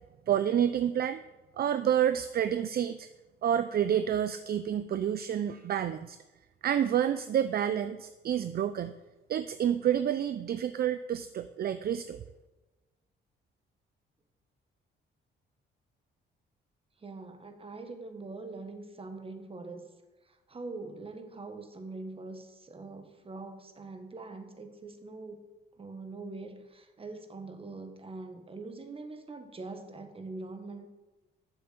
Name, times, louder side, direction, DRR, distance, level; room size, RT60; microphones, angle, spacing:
voice 1, 0.3-1.2 1.6-3.1 3.4-6.2 6.6-9.0 9.3-12.2, right 9 dB, 50° right, 11 dB, 0.5 m, -29 dB
voice 2, 17.0-19.9 20.3-25.4 25.8-30.9, right 3 dB, 30° right, 7 dB, 1.5 m, -43 dB
7.6 x 7.1 x 7.7 m, 1.1 s
cardioid pair, 90°, 20 cm